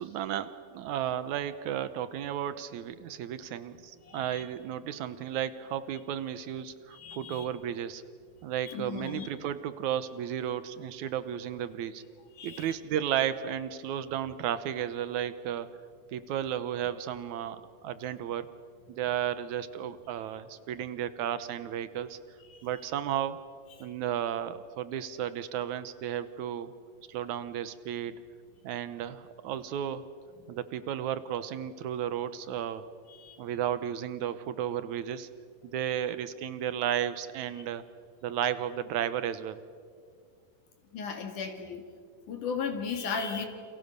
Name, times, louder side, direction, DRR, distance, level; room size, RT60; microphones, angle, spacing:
voice 1, 0.0-8.0 8.4-12.0 12.4-15.7 16.1-18.5 18.9-22.2 22.6-23.5 23.8-26.7 27.1-28.2 28.6-30.1 30.5-32.9 33.4-35.3 35.7-37.8 38.2-39.6, right 10 dB, 70° right, 13 dB, 2.0 m, -33 dB
voice 2, 4.1-4.4 6.9-7.4 8.7-9.3 12.4-12.7 33.2-33.4 40.9-41.8 42.3-43.5, left 5 dB, 65° left, 4 dB, 3.6 m, -35 dB
29.5 x 28.5 x 6.7 m, 2.1 s
omnidirectional pair, 4.0 m